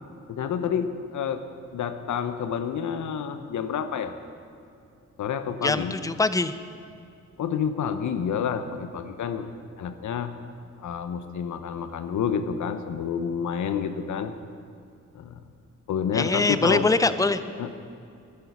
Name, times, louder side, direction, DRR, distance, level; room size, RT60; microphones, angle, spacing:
voice 1, 0.3-1.4 1.7-4.2 5.2-5.9 7.4-9.5 9.8-10.3 10.8-14.3 15.1-15.4 15.9-16.9 17.6-17.7, left 7 dB, 85° left, 10 dB, 1.0 m, -29 dB
voice 2, 5.6-6.6 16.1-17.4, left 3 dB, 10° left, 13 dB, 0.5 m, -23 dB
11.5 x 11.0 x 8.3 m, 2.5 s
wide cardioid pair, 120°, 29 cm